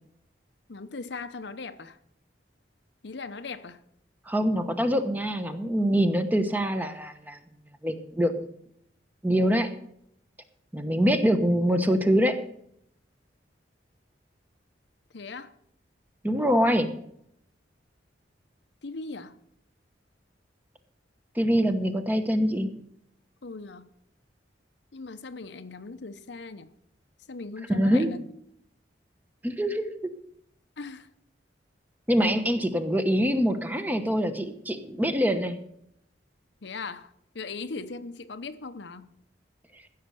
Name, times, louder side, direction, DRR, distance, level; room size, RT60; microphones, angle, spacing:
voice 1, 0.7-2.0 3.0-3.8 15.1-15.5 18.8-19.4 23.4-23.8 24.9-26.7 27.3-28.3 30.8-31.1 36.6-39.1, left 4 dB, 70° left, 0.8 m, -39 dB
voice 2, 4.3-7.4 7.8-8.5 9.2-9.7 10.7-12.4 16.2-16.9 21.3-22.7 27.7-28.1 29.4-30.0 32.1-35.6 39.7-39.8, equal, 10° right, 0.9 m, -24 dB
15.0 x 6.7 x 6.7 m
head